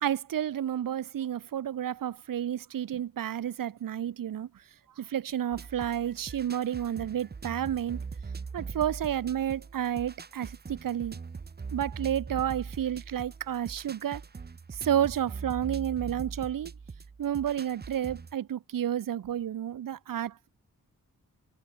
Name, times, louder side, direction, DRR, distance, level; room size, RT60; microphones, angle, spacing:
voice 1, 0.0-4.6 5.0-8.0 8.5-11.2 11.7-14.2 14.7-16.7 17.2-20.5, right 10 dB, 80° right, 1.0 m, -31 dB
sound 1, 5.5-18.3, right 5 dB, 30° right, 1.0 m, -41 dB
wide cardioid pair, 140°, 33 cm